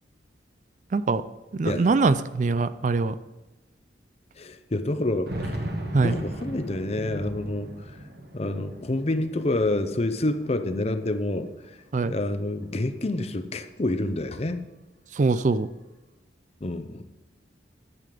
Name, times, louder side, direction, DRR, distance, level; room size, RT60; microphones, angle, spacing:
voice 1, 0.9-1.2 1.5-3.1 5.9-6.1 11.9-12.1 15.2-15.7, right 3 dB, 45° right, 14 dB, 0.4 m, -23 dB
sound 1, 1.3-1.4 1.6-1.7 2.6-2.7 3.2-3.3 4.9-11.3 11.7-12.7, right 1 dB, 60° right, 1.5 m, -37 dB
voice 2, 1.6-2.0 4.4-5.5 5.9-7.7 8.3-11.5 12.0-14.6 16.6-17.0, left 2 dB, 35° left, 10 dB, 0.7 m, -28 dB
11.0 x 7.7 x 5.1 m, 1.1 s
head